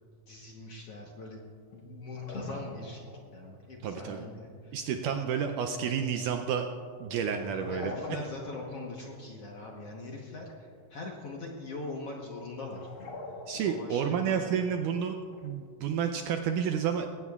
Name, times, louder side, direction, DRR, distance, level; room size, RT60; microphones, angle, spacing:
voice 1, 0.3-1.4 1.7-4.8 7.5-12.8 13.5-14.6, left 2 dB, 60° left, -1 dB, 1.6 m, -42 dB
sound 1, 1.7-1.8 2.1-3.2 7.3-9.2 9.6-10.1 10.5-10.7 11.1-11.7 12.3-12.4 12.6-14.1 14.9-15.5, left 2 dB, 45° left, 2.0 m, -44 dB
voice 2, 3.8-4.2 4.7-6.7 7.0-7.9 13.5-15.2 15.4-17.1, right 7 dB, 80° right, 5 dB, 1.9 m, -30 dB
20.5 x 17.0 x 2.4 m, 2.3 s
omnidirectional pair, 4.2 m